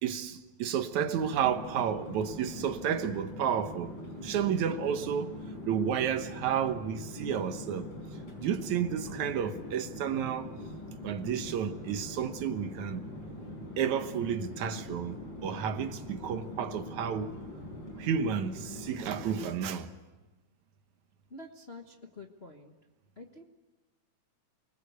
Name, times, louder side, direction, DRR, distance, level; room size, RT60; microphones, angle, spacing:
voice 1, 0.0-3.9 4.2-5.4 5.7-7.9 8.4-10.5 11.0-13.0 13.8-15.2 15.4-17.4 18.0-19.9, right 8 dB, 70° right, 2.5 m, -31 dB
Chatter / Fixed-wing aircraft airplane, 0.9-19.8, left 1 dB, 35° left, 5.1 m, -43 dB
voice 2, 21.3-22.7 23.2-23.4, left 2 dB, 55° left, 0.6 m, -47 dB
29.0 x 20.5 x 8.2 m
omnidirectional pair, 3.6 m